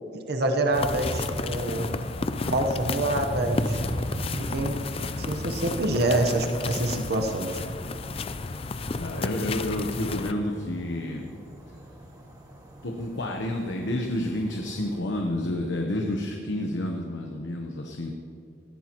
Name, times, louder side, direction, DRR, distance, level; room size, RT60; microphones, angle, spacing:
voice 1, 0.1-1.9 2.4-3.8 4.4-4.8 5.2-7.6, right 1 dB, 60° right, 3 dB, 1.0 m, -26 dB
sound 1, 0.7-10.3, left 3 dB, 30° left, 0.4 m, -32 dB
sound 2, 0.8-15.0, equal, 20° right, 1.9 m, -39 dB
voice 2, 9.0-11.4 12.8-18.1, left 1 dB, 85° left, 2 dB, 1.0 m, -30 dB
19.0 x 14.5 x 3.0 m, 2.5 s
head